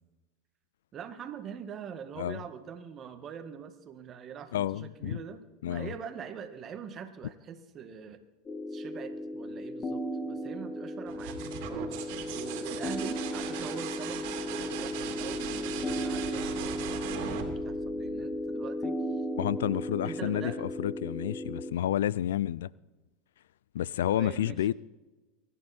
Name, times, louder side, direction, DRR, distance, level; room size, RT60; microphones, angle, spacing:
voice 1, 0.9-8.2 8.7-19.2 20.0-20.6 24.1-24.7, right 7 dB, 35° right, 1.9 m, -44 dB
voice 2, 4.5-5.2 5.6-5.9 19.4-22.7 23.7-24.7, left 12 dB, 85° left, 0.4 m, -30 dB
sound 1, 8.5-21.7, equal, 25° left, 1.5 m, -35 dB
sound 2, 11.1-18.6 20.4-21.0, right 8 dB, 65° right, 2.9 m, -39 dB
23.0 x 11.0 x 4.4 m
hypercardioid pair, 105°, 0 cm